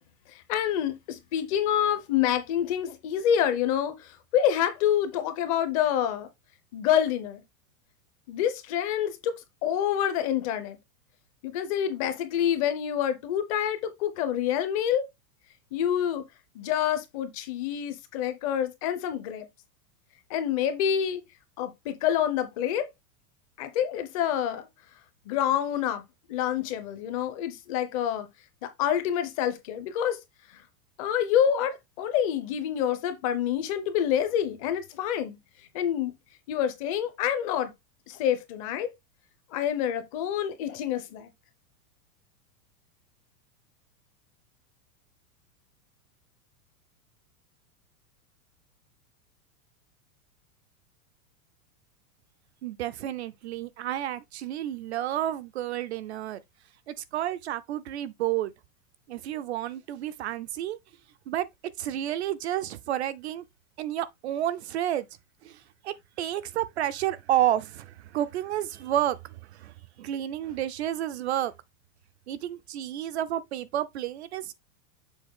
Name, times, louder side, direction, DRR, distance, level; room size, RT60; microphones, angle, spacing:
voice 1, 0.3-6.3 6.7-7.4 8.3-10.8 11.4-15.1 15.7-16.2 16.5-19.5 20.3-21.2 21.6-22.9 23.6-24.7 25.3-26.0 26.3-28.3 28.6-30.2 31.0-35.4 35.7-36.1 36.5-37.7 38.1-38.9 39.5-41.3, left 9 dB, 25° left, 0.6 m, -27 dB
voice 2, 52.6-56.4 56.9-58.5 59.1-60.8 61.3-61.5 61.8-63.5 63.8-65.1 65.4-71.5 72.3-74.5, right 12 dB, 45° right, 0.5 m, -30 dB
7.1 x 4.4 x 3.5 m
supercardioid pair, 170°, 46 cm